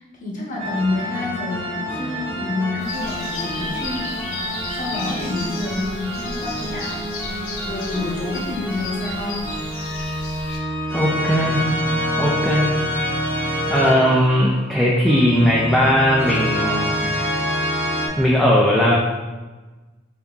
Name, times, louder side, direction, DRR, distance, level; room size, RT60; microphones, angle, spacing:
voice 1, 0.0-4.1 4.7-7.0 7.6-9.5, left 2 dB, 40° left, -2 dB, 1.0 m, -28 dB
sound 1, 0.6-18.1, equal, 65° right, 1.4 m, -27 dB
sound 2, 2.8-10.6, left 2 dB, 85° left, 1.2 m, -34 dB
voice 2, 10.9-11.7 12.2-12.7 13.7-16.9 17.2-17.3 18.2-18.9, equal, ahead, -6 dB, 0.5 m, -18 dB
8.1 x 2.8 x 2.4 m, 1.2 s
head